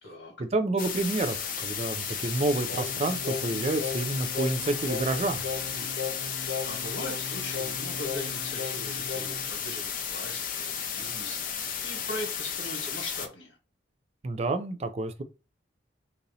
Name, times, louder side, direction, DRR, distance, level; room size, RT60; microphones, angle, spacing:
voice 1, 0.0-0.3 5.7-6.0 6.3-13.6, left 1 dB, 70° left, 1.2 m, -41 dB
voice 2, 0.5-5.4 14.2-15.2, right 2 dB, 35° right, 0.3 m, -29 dB
sound 1, 0.8-13.3, left 7 dB, 45° left, 0.5 m, -34 dB
Singing, 2.7-9.5, left 5 dB, 85° left, 0.9 m, -37 dB
sound 2, 3.7-6.5, equal, 5° right, 0.8 m, -50 dB
2.9 x 2.7 x 3.9 m
head